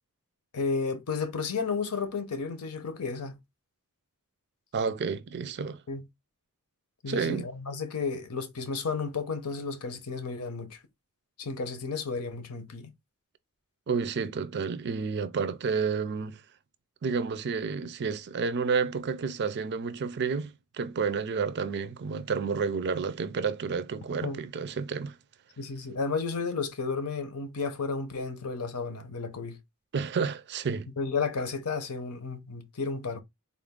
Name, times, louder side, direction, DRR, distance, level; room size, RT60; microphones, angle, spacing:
voice 1, 0.5-3.4 5.9-6.0 7.0-10.8 11.4-12.9 24.2-24.4 25.6-29.6 31.0-33.2, left 4 dB, 85° left, 0.8 m, -32 dB
voice 2, 4.7-5.8 7.1-7.4 13.9-16.4 17.0-25.2 29.9-30.9, right 5 dB, 50° right, 0.4 m, -30 dB
3.9 x 2.5 x 3.6 m
head